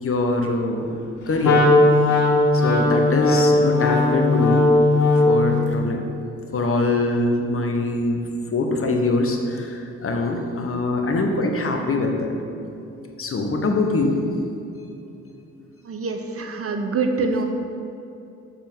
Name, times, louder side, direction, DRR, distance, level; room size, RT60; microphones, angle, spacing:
voice 1, 0.0-1.0 1.3-1.6 2.5-4.7 5.1-6.0 6.5-8.2 8.5-12.3 13.2-14.2, left 2 dB, 40° left, 2 dB, 1.2 m, -23 dB
Wind instrument woodwind instrument, 1.4-5.5, left 2 dB, 60° left, 1.3 m, -17 dB
voice 2, 15.8-17.5, right 4 dB, 45° right, 5 dB, 0.9 m, -25 dB
6.7 x 5.6 x 5.5 m, 2.7 s
hypercardioid pair, 40°, 33 cm